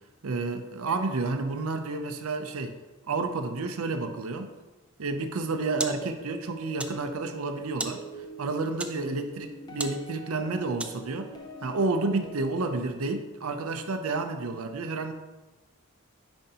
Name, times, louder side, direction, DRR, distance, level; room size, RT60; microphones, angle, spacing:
voice 1, 0.2-2.7 3.1-4.5 5.0-8.0 8.4-11.3 11.6-15.1, right 3 dB, 90° right, 7 dB, 0.6 m, -30 dB
sound 1, 5.2-11.3, right 2 dB, 5° right, 0.3 m, -41 dB
sound 2, 6.0-12.8, equal, 20° left, 0.7 m, -44 dB
8.9 x 5.2 x 2.9 m, 1.2 s
head